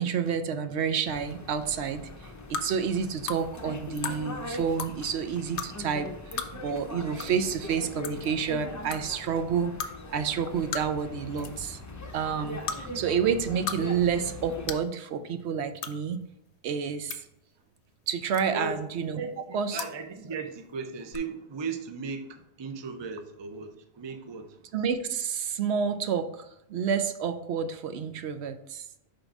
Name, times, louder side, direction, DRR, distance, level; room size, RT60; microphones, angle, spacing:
voice 1, 0.0-2.0 2.5-9.7 10.1-11.8 12.1-16.2 16.6-17.2 18.1-19.2 19.5-19.8 24.7-28.8, right 7 dB, 75° right, 10 dB, 0.8 m, -29 dB
sound 1, 1.1-14.8, left 1 dB, 25° left, 0.5 m, -41 dB
sound 2, 2.5-2.7 3.3-3.4 4.0-4.2 4.7-4.9 5.6-5.7 6.3-6.5 7.2-7.3 7.5-7.6 8.0-8.3 8.9-9.0 9.8-9.9 10.7-11.0 11.3-11.6 12.6-12.8 13.4-13.8 14.1-14.2 14.7-14.9 15.8-15.9 16.8-17.2 18.3-18.7 19.7-19.9 21.1-21.2, left 6 dB, 85° left, 0.9 m, -34 dB
voice 2, 18.5-18.8 19.1-24.7, right 4 dB, 35° right, 7 dB, 0.4 m, -37 dB
5.2 x 3.8 x 5.8 m, 0.81 s
omnidirectional pair, 1.1 m